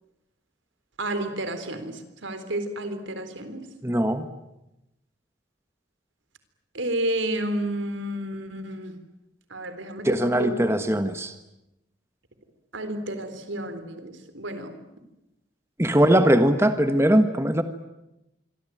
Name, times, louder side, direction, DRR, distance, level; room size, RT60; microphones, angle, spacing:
voice 1, 1.0-3.7 6.7-9.0 9.5-10.6 12.7-14.7, right 1 dB, 85° right, 10 dB, 3.8 m, -31 dB
voice 2, 3.8-4.3 10.0-11.3 15.8-17.6, right 1 dB, 15° right, 9 dB, 1.3 m, -20 dB
26.5 x 23.5 x 9.2 m, 0.92 s
head